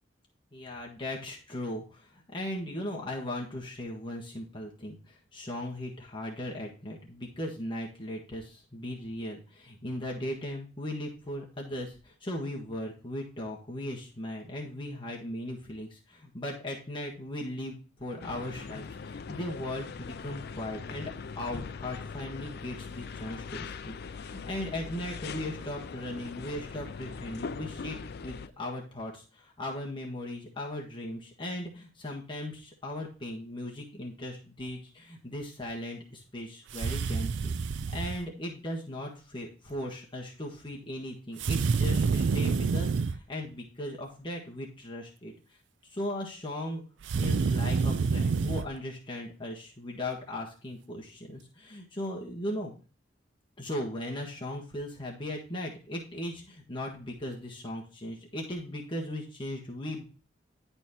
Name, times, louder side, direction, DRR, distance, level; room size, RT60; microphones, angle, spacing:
voice 1, 0.5-28.0 28.2-37.6 37.9-45.3 45.9-46.8 47.2-52.7 53.6-60.0, left 1 dB, 25° left, -1 dB, 1.6 m, -38 dB
sound 1, 18.2-28.5, left 5 dB, 60° left, 0.5 m, -41 dB
sound 2, 36.7-38.2 41.4-43.2 47.0-48.7, right 5 dB, 75° right, 0.4 m, -28 dB
10.5 x 4.4 x 4.2 m, 0.36 s
head